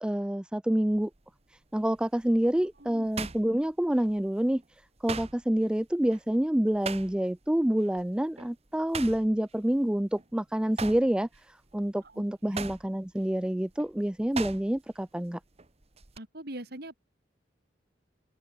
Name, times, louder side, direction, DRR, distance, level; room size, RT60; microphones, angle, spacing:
voice 1, 0.0-1.1 1.5-15.4, right 1 dB, 5° right, 0.3 m, -28 dB
sound 1, 0.9-1.2 1.8-4.3 4.6-7.5 7.8-8.0 8.4-10.3 10.6-15.0 15.3-16.2, right 5 dB, 35° right, 1.4 m, -40 dB
voice 2, 2.5-3.1 12.0-12.2 12.5-12.7 16.2-17.0, right 1 dB, 60° right, 4.5 m, -43 dB
head